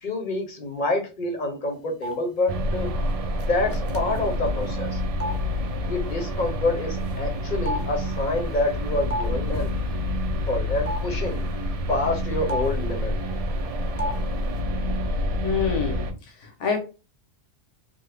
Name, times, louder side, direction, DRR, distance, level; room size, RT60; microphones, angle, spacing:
voice 1, 0.0-2.9 3.4-5.0 5.8-9.7 10.5-11.4 11.9-13.1, left 2 dB, 45° left, 3 dB, 0.8 m, -27 dB
sound 1, 2.0-2.1 3.4-3.5 3.7-4.2 5.2-5.3 7.0-7.1 7.7-9.3 9.5-9.7 10.9-11.0 12.5-12.8 14.0-14.2 14.4-14.6, equal, 20° left, 0.4 m, -31 dB
sound 2, 2.5-16.1, left 1 dB, 60° right, 0.4 m, -28 dB
voice 2, 15.4-16.0 16.4-16.8, left 6 dB, 90° left, 3 dB, 1.1 m, -26 dB
3.3 x 2.1 x 3.3 m, 0.31 s
omnidirectional pair, 1.2 m